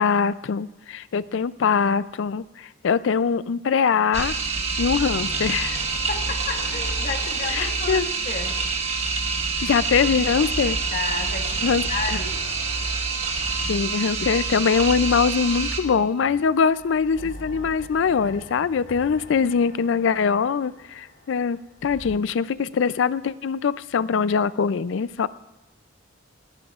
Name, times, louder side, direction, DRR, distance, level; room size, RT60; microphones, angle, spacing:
voice 1, 0.0-4.4 4.8-5.8 7.5-8.1 9.6-10.8 11.6-12.2 13.7-25.3, left 6 dB, 65° left, 16 dB, 0.4 m, -23 dB
sound 1, 4.1-15.8, right 4 dB, 35° right, 1.6 m, -27 dB
sound 2, 4.8-9.7 10.1-15.4 16.1-22.2, left 1 dB, 90° left, 2.0 m, -42 dB
voice 2, 6.1-8.6 10.9-12.5, left 3 dB, 45° left, 2 dB, 1.6 m, -32 dB
20.0 x 15.0 x 2.4 m, 1.0 s
head